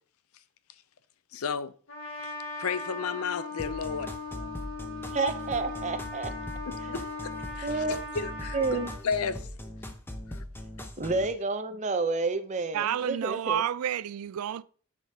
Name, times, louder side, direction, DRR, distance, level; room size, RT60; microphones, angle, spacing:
voice 1, 1.3-1.7 2.2-2.3 2.6-4.1 6.6-7.0 7.6-8.8 9.0-9.4 10.3-10.4, left 6 dB, 80° left, 0.5 m, -32 dB
Trumpet, 1.9-9.0, left 2 dB, 65° left, 1.9 m, -39 dB
sound 1, 3.6-11.3, left 1 dB, 10° left, 0.6 m, -41 dB
voice 2, 5.1-6.3 7.6-8.1 8.5-8.9 11.0-13.7, right 3 dB, 35° right, 0.6 m, -30 dB
voice 3, 12.7-14.6, right 10 dB, 85° right, 0.3 m, -30 dB
10.0 x 4.9 x 2.8 m
head